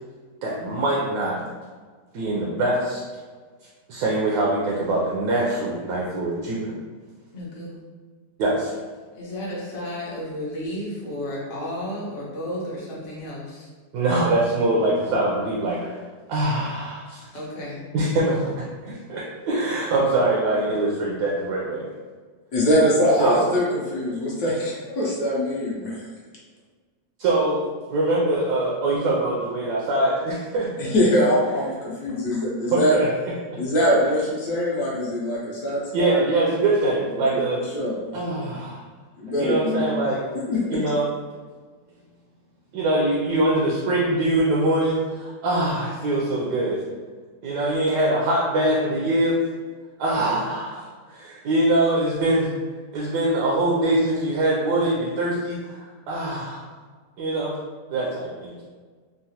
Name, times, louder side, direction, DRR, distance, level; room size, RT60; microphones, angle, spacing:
voice 1, 0.4-1.4 2.1-3.0 3.9-6.8 8.4-8.8 13.9-16.0 16.3-17.3 17.9-21.9 23.2-23.5 27.2-30.7 32.7-33.1 33.5-33.6 35.9-37.6 38.1-38.8 39.4-40.2 40.7-41.1 42.7-46.8 47.4-49.4 50.0-52.5 52.9-56.6 57.2-57.5 57.9-58.6, right 2 dB, 70° right, -4 dB, 1.0 m, -23 dB
voice 2, 7.3-7.8 9.1-13.7 17.3-17.9, left 1 dB, 45° left, -6 dB, 0.7 m, -33 dB
voice 3, 22.5-26.1 30.8-33.0 33.6-36.2 37.3-37.4 37.7-38.0 39.2-39.8 40.5-40.6, equal, 65° left, -5 dB, 1.1 m, -22 dB
3.8 x 2.0 x 2.7 m, 1.5 s
omnidirectional pair, 2.0 m